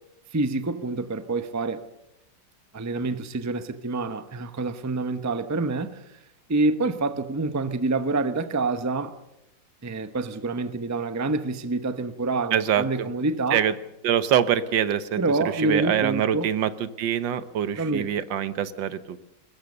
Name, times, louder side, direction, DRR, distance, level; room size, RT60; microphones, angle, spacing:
voice 1, 0.3-1.8 2.7-6.0 6.5-9.2 9.8-13.6 15.2-16.5 17.8-18.1, right 3 dB, 20° right, 0.5 m, -27 dB
voice 2, 12.5-13.1 13.5-13.7 14.0-19.2, right 9 dB, 90° right, 1.7 m, -25 dB
22.5 x 20.5 x 6.7 m
omnidirectional pair, 2.0 m